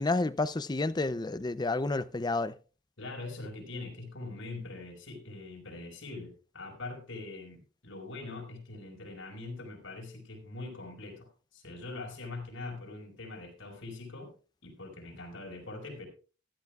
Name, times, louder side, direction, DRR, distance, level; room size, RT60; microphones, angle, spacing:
voice 1, 0.0-2.5, left 2 dB, 20° left, 0.5 m, -30 dB
voice 2, 3.0-14.3 14.6-16.1, left 2 dB, 90° left, 5.1 m, -43 dB
16.0 x 13.0 x 2.4 m
head